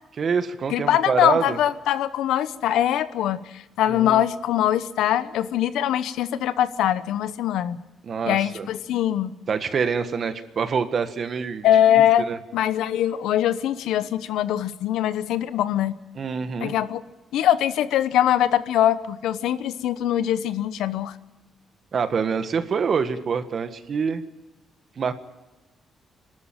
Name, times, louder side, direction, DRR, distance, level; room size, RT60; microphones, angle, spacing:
voice 1, 0.1-1.6 3.9-4.2 8.0-8.7 9.5-11.7 12.2-12.4 16.1-16.7 21.9-24.2 25.0-25.1, right 6 dB, 50° right, 10 dB, 1.6 m, -26 dB
voice 2, 0.7-7.8 8.3-9.3 11.6-12.3 12.5-16.0 16.6-17.0 17.3-21.1, left 11 dB, 90° left, 14 dB, 0.9 m, -22 dB
26.5 x 13.0 x 9.2 m, 1.1 s
cardioid pair, 90°, 0 cm